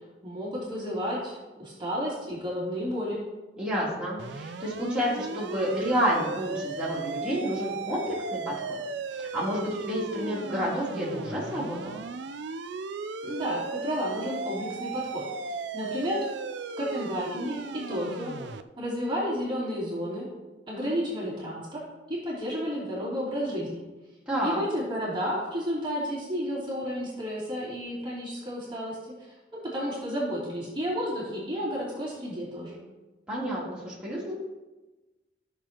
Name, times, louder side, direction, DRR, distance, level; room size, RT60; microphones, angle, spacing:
voice 1, 0.2-3.2 13.2-16.2 16.8-17.6 17.9-18.3 18.8-20.3 20.7-21.8 22.1-23.8 24.4-29.0 29.5-32.8, equal, 30° right, -7 dB, 3.0 m, -32 dB
voice 2, 3.6-8.8 9.1-12.0 24.3-24.6 33.3-34.3, equal, 5° right, -9 dB, 3.3 m, -30 dB
sound 1, 4.2-18.6, right 4 dB, 85° right, 0.5 m, -36 dB
14.5 x 6.8 x 3.0 m, 1.1 s
head